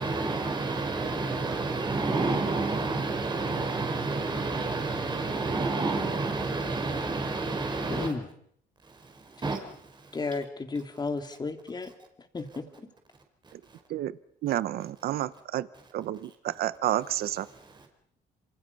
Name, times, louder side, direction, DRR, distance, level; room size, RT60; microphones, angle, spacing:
voice 1, 0.0-8.1 8.9-9.7 10.0-10.1 13.4-13.5 17.5-17.9, right 3 dB, 25° right, 4.9 m, -30 dB
voice 2, 7.9-8.3 10.1-11.9 12.3-12.7, left 3 dB, 25° left, 3.1 m, -33 dB
voice 3, 14.4-15.7 15.9-17.5, right 13 dB, 65° right, 1.0 m, -30 dB
27.5 x 27.0 x 5.5 m
cardioid pair, 110°, 17 cm